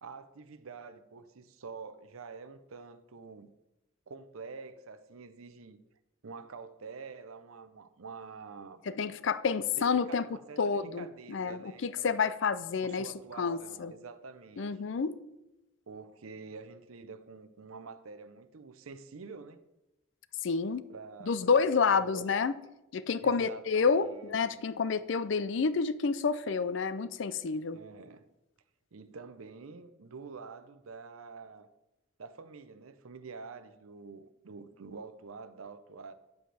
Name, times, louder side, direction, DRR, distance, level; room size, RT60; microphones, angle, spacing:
voice 1, 0.0-3.5 4.1-5.8 6.2-8.8 9.8-12.2 12.8-14.7 15.9-19.6 20.9-21.6 21.9-22.3 23.2-24.7 27.7-28.3 28.9-31.7 32.2-36.1, right 4 dB, 90° right, 0.7 m, -47 dB
voice 2, 8.9-13.1 13.4-13.9 14.6-15.2 20.4-20.8 21.3-22.6 22.9-27.8, left 5 dB, 60° left, 0.4 m, -29 dB
9.4 x 7.7 x 3.4 m
head